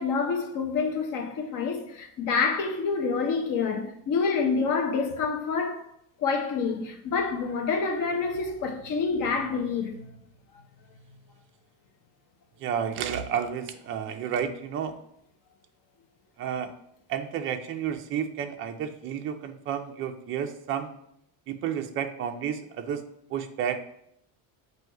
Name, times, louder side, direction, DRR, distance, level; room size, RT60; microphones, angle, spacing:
voice 1, 0.0-5.8 6.2-10.0, left 5 dB, 40° left, 0.9 m, -27 dB
voice 2, 12.6-14.9 16.4-16.7 17.1-20.9 21.5-23.0 23.3-23.9, right 8 dB, 30° right, 0.3 m, -31 dB
7.6 x 2.7 x 4.5 m
cardioid pair, 150°, 48 cm